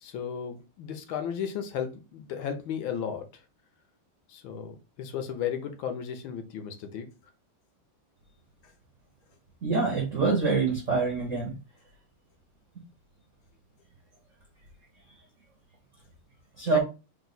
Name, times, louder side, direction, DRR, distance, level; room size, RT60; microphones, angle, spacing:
voice 1, 0.0-3.3 4.3-7.1 16.7-16.8, left 8 dB, 75° left, 1.4 m, -34 dB
voice 2, 9.6-11.5 16.6-16.8, right 4 dB, 45° right, 1.0 m, -25 dB
3.8 x 2.5 x 3.9 m
omnidirectional pair, 2.3 m